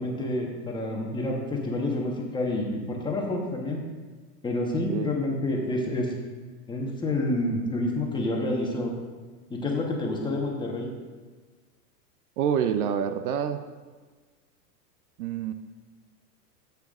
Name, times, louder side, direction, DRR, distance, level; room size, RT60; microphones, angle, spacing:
voice 1, 0.0-3.8 4.4-6.1 6.7-8.9 9.5-10.9, left 2 dB, 10° left, -1 dB, 1.1 m, -28 dB
voice 2, 12.4-13.6 15.2-15.5, right 8 dB, 60° right, 9 dB, 0.7 m, -27 dB
14.0 x 8.4 x 2.5 m, 1.4 s
hypercardioid pair, 140°, 49 cm